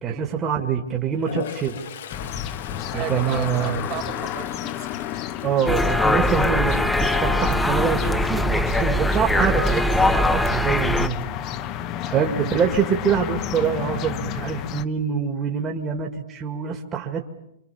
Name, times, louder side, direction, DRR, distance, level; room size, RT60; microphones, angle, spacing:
voice 1, 0.0-1.9 2.9-3.9 5.4-11.2 12.1-17.2, right 7 dB, 25° right, 2 dB, 2.2 m, -25 dB
Toilet flush, 1.1-6.3 6.7-7.1 11.6-11.7 12.0-12.7, left 9 dB, 70° left, 1.6 m, -39 dB
sound 1, 2.1-14.8, left 10 dB, 40° left, 1.2 m, -32 dB
voice 2, 2.9-4.9 12.1-12.3, right 11 dB, 40° right, 7 dB, 2.7 m, -35 dB
sound 2, 5.7-11.1, left 1 dB, 5° left, 1.2 m, -21 dB
26.5 x 25.0 x 7.2 m, 0.85 s
hypercardioid pair, 125°, 0 cm